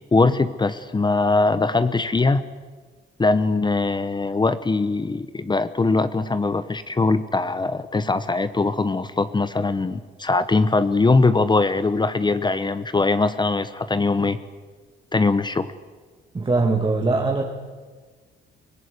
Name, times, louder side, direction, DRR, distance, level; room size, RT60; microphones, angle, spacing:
voice 1, 0.1-2.4 3.2-14.4 15.1-15.7, left 3 dB, 20° left, 13 dB, 1.0 m, -21 dB
voice 2, 16.3-17.4, right 3 dB, 25° right, 1 dB, 2.3 m, -21 dB
23.5 x 16.0 x 9.6 m, 1.4 s
cardioid pair, 90°, 20 cm